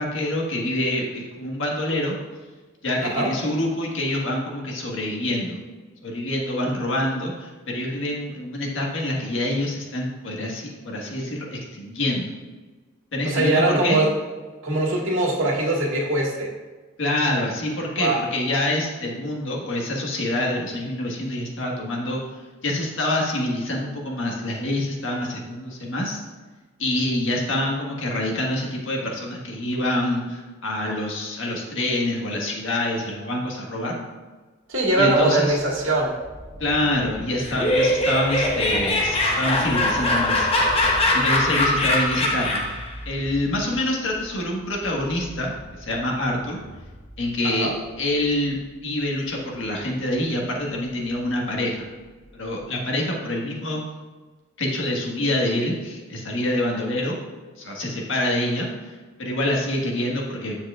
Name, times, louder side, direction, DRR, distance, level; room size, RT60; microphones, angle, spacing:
voice 1, 0.0-2.2 2.8-5.6 6.0-12.3 13.1-14.0 17.0-22.2 22.6-26.2 26.8-34.0 35.0-35.6 36.6-40.5 41.1-42.6 43.0-46.6 47.2-47.7 48.0-51.9 52.3-53.8 54.6-57.2 57.6-60.6, left 1 dB, 65° left, -1 dB, 1.6 m, -26 dB
voice 2, 3.0-3.3 13.2-14.1 14.6-16.5 18.0-18.2 34.7-36.2 47.4-47.7, right 2 dB, 80° right, -3 dB, 1.9 m, -22 dB
sound 1, 34.7-52.6, equal, 25° right, 1.3 m, -42 dB
Laughter, 37.4-42.9, left 1 dB, 30° left, 1.0 m, -22 dB
9.3 x 7.4 x 2.5 m, 1.3 s
head